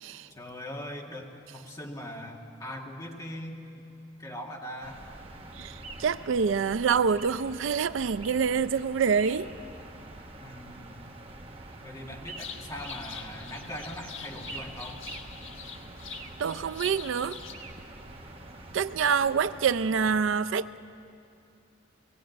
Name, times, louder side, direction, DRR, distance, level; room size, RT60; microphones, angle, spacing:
voice 1, 0.3-3.6 4.2-5.0 10.4-11.1 11.8-15.0, left 1 dB, 20° left, -1 dB, 2.0 m, -41 dB
sound 1, 4.8-20.2, right 2 dB, 30° right, 1.4 m, -45 dB
voice 2, 5.6-9.5 16.4-17.4 18.7-20.8, right 6 dB, 70° right, 15 dB, 0.4 m, -26 dB
sound 2, 12.4-17.5, left 6 dB, 80° left, 1.5 m, -44 dB
18.5 x 15.5 x 9.3 m, 2.6 s
head